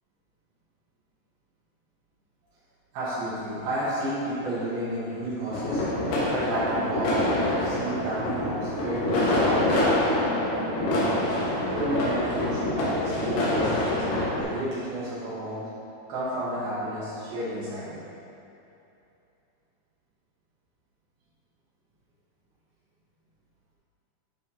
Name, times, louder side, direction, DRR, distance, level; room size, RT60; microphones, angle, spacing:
voice 1, 2.9-5.8 6.3-9.7 10.1-11.2 11.7-14.1 14.4-15.7 16.1-18.0, right 1 dB, 75° right, -10 dB, 3.0 m, -31 dB
sound 1, 5.5-14.4, left 1 dB, 90° left, 3.5 m, -26 dB
10.5 x 5.2 x 2.8 m, 2.8 s
omnidirectional pair, 4.6 m